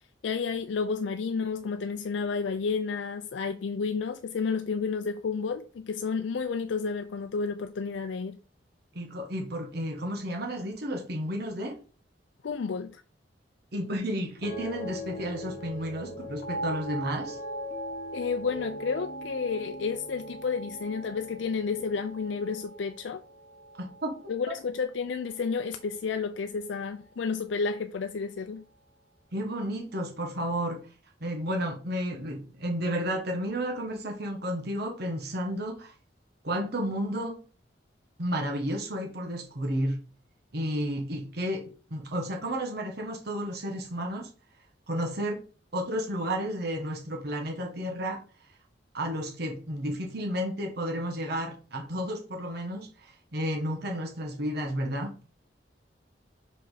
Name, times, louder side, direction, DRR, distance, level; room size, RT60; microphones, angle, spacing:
voice 1, 0.2-8.4 12.4-13.0 18.1-23.2 24.3-28.6, left 5 dB, 80° left, 0.4 m, -31 dB
voice 2, 8.9-11.8 13.7-17.4 23.8-24.1 29.3-30.8 31.2-35.9 36.4-37.4 38.2-40.0 40.5-44.3 44.9-45.4 45.7-48.2 48.9-55.1, equal, 60° right, 1.3 m, -32 dB
sound 1, 14.4-24.8 25.1-25.6, right 1 dB, 45° left, 1.3 m, -40 dB
5.8 x 5.1 x 4.1 m
head